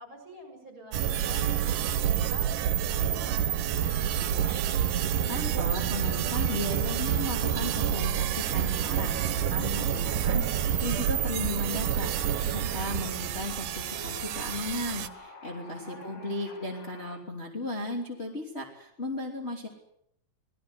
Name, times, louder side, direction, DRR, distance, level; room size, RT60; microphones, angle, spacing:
voice 1, 0.0-4.6 15.6-16.4, equal, 40° right, 6 dB, 7.8 m, -49 dB
sound 1, 0.9-15.1, right 9 dB, 80° right, 2.6 m, -28 dB
sound 2, 3.7-17.2, left 2 dB, 50° left, 3.9 m, -48 dB
voice 2, 5.3-12.1 12.5-19.7, left 2 dB, 20° left, 0 dB, 3.1 m, -36 dB
25.0 x 18.5 x 8.2 m, 0.74 s
omnidirectional pair, 3.7 m